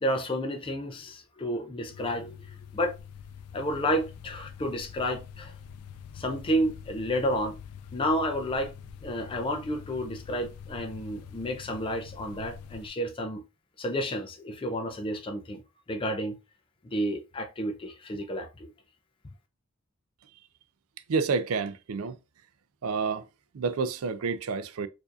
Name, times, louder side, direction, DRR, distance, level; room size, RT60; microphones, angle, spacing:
voice 1, 0.0-2.9 3.5-5.5 6.1-7.6 7.9-8.7 9.0-13.4 13.8-15.6 15.9-16.4 16.9-18.7, equal, 25° left, 0.4 m, -31 dB
sound 1, 1.9-12.9, left 7 dB, 90° left, 0.4 m, -45 dB
voice 2, 21.1-22.2 22.8-23.3 23.5-24.9, right 4 dB, 75° right, 0.4 m, -29 dB
4.7 x 2.6 x 2.4 m
head